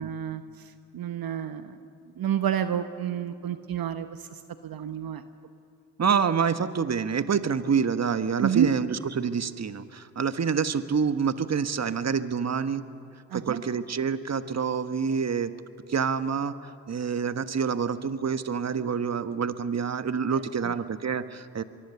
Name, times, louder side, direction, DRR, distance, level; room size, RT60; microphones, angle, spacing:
voice 1, 0.0-1.8 2.2-5.2 8.4-8.7 13.3-13.6 20.3-20.8, right 9 dB, 60° right, 10 dB, 1.1 m, -29 dB
voice 2, 6.0-12.8 13.3-15.5 15.9-16.5 16.9-21.6, right 6 dB, 40° right, 11 dB, 1.3 m, -27 dB
23.5 x 23.5 x 7.0 m, 2.4 s
hypercardioid pair, 40°, 41 cm